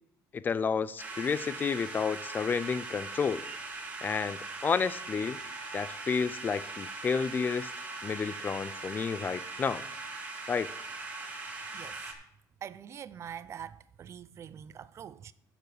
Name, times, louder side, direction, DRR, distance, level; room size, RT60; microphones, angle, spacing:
voice 1, 0.3-3.5 4.0-5.4 5.7-7.7 8.0-9.8 10.5-10.7, left 6 dB, 25° left, 0.4 m, -31 dB
sound 1, 1.0-12.1, right 3 dB, 20° right, 1.9 m, -40 dB
voice 2, 11.7-12.1 12.6-15.3, right 9 dB, 35° right, 0.5 m, -44 dB
10.5 x 7.1 x 4.9 m
cardioid pair, 150°, 8 cm